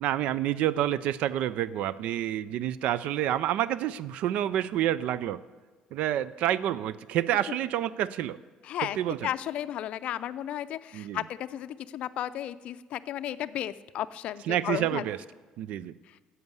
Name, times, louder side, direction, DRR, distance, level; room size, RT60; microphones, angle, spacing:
voice 1, 0.0-5.4 5.9-8.4 8.8-9.3 10.9-11.2 14.4-15.2 15.6-15.9, right 12 dB, 70° right, 18 dB, 0.4 m, -28 dB
voice 2, 9.2-15.0, left 11 dB, 60° left, 13 dB, 0.5 m, -34 dB
10.5 x 8.0 x 9.6 m, 1.4 s
cardioid pair, 140°, 2 cm